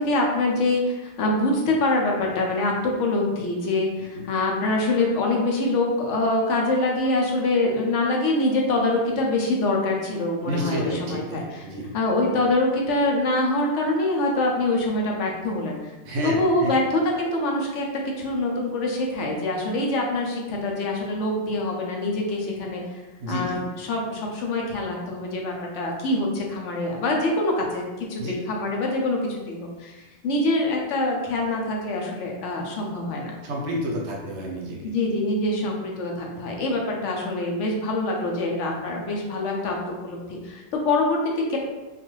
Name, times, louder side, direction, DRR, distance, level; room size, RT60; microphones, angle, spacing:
voice 1, 0.0-11.4 11.9-15.9 16.2-17.9 18.2-23.0 23.3-30.0 30.2-33.3 34.8-41.6, left 2 dB, 85° left, 0 dB, 0.9 m, -25 dB
voice 2, 10.4-11.9 16.0-16.8 23.2-23.6 28.2-28.3 33.4-34.9, equal, 75° right, -1 dB, 1.0 m, -30 dB
2.5 x 2.3 x 3.0 m, 1.2 s
omnidirectional pair, 1.2 m